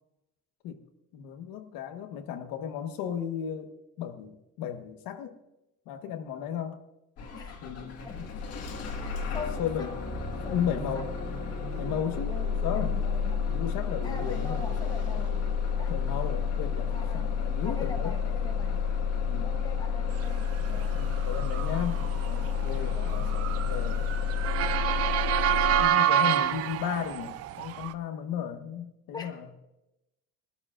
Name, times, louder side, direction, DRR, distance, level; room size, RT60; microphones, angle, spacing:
voice 1, 1.1-5.3 5.9-6.8 7.6-8.3 9.6-10.1 10.4-11.2 11.8-12.3 12.6-13.1 13.5-14.7 15.9-18.2 19.3-19.6 20.9-24.1 25.8-29.6, left 8 dB, 70° left, 7 dB, 1.3 m, -35 dB
Bus / Engine starting, 7.2-25.8, left 6 dB, 40° left, 1.6 m, -30 dB
voice 2, 7.3-8.3 9.0-9.9 10.4-10.7 12.3-13.5 14.0-15.5 15.7-15.9 16.9-17.3 17.6-18.9 19.4-21.0 22.9-23.5 29.1-29.3, left 4 dB, 10° left, 4 dB, 0.9 m, -43 dB
sound 1, 9.8-21.8 23.0-26.6, right 6 dB, 75° right, 2.6 m, -48 dB
Motor vehicle (road) / Siren, 20.7-27.9, right 10 dB, 40° right, 0.5 m, -28 dB
21.5 x 13.0 x 2.5 m, 0.92 s
cardioid pair, 180°, 36 cm